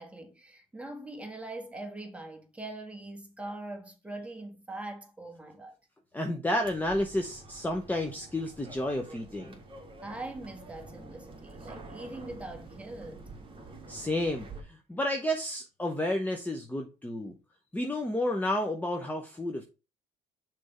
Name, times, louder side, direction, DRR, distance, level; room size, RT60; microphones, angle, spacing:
voice 1, 0.0-5.7 10.0-13.2, right 2 dB, 5° right, 1.6 m, -42 dB
voice 2, 6.1-9.5 13.9-17.4 17.7-19.6, left 1 dB, 10° left, 0.9 m, -31 dB
sound 1, 6.6-14.6, right 3 dB, 30° right, 2.1 m, -48 dB
6.3 x 3.5 x 5.6 m
cardioid pair, 110°, 17 cm